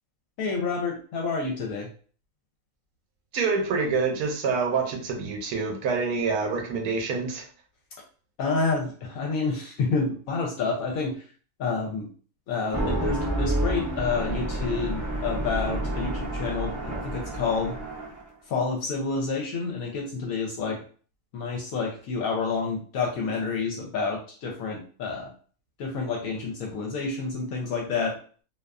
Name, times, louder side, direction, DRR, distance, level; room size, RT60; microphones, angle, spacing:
voice 1, 0.4-1.9 8.4-11.2 11.6-12.1 12.5-17.8 18.5-20.8 21.3-25.3 25.8-28.2, left 4 dB, 70° left, 0 dB, 1.0 m, -29 dB
voice 2, 3.3-7.5, right 4 dB, 75° right, 3 dB, 1.1 m, -26 dB
sound 1, 12.6-18.3, right 1 dB, 30° right, 0.3 m, -29 dB
2.5 x 2.3 x 2.3 m, 0.41 s
omnidirectional pair, 1.6 m